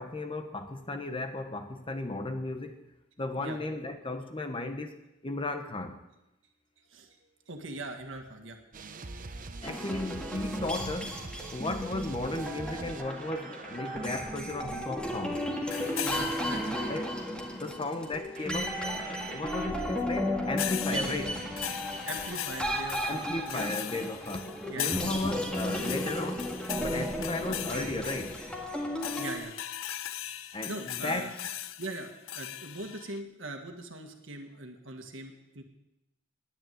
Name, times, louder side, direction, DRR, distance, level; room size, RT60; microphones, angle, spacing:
voice 1, 0.0-2.8 3.2-5.0 5.2-6.0 9.6-11.2 11.5-15.5 16.9-21.3 23.0-26.5 26.8-28.4 30.5-31.4, left 2 dB, 25° left, 1.0 m, -35 dB
voice 2, 7.5-8.7 16.0-16.9 20.9-21.3 22.1-23.7 24.7-25.0 29.2-29.5 29.9-30.0 30.7-31.3 31.8-35.6, right 2 dB, 65° right, 1.8 m, -41 dB
sound 1, 8.7-14.4 15.7-17.4 18.3-19.7 21.0-22.7 23.7-23.8, right 3 dB, 40° right, 0.8 m, -45 dB
sound 2, 9.6-29.4, equal, 5° left, 1.8 m, -35 dB
sound 3, 15.7-17.3 20.6-33.2, left 11 dB, 80° left, 0.6 m, -39 dB
10.5 x 9.6 x 9.3 m
head